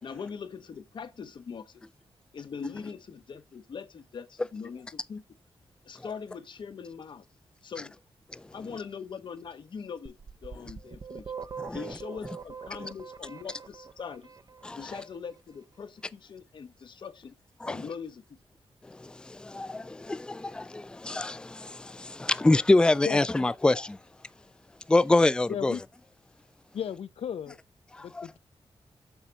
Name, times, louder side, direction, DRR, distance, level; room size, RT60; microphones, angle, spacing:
voice 1, 0.0-1.8 2.3-5.2 5.8-7.2 7.6-7.9 8.5-10.1 10.4-11.3 11.7-14.3 14.8-17.3 17.6-18.2, left 6 dB, 50° left, 0.9 m, -41 dB
sound 1, 10.1-14.9, right 6 dB, 40° right, 0.7 m, -42 dB
voice 2, 14.6-15.0 17.6-17.8 18.8-24.0 24.9-25.8 27.9-28.3, left 2 dB, 10° left, 0.3 m, -26 dB
voice 3, 25.5-25.8 26.7-27.6 28.0-28.4, left 8 dB, 75° left, 0.6 m, -34 dB
7.1 x 6.6 x 3.7 m
wide cardioid pair, 155°, 10 cm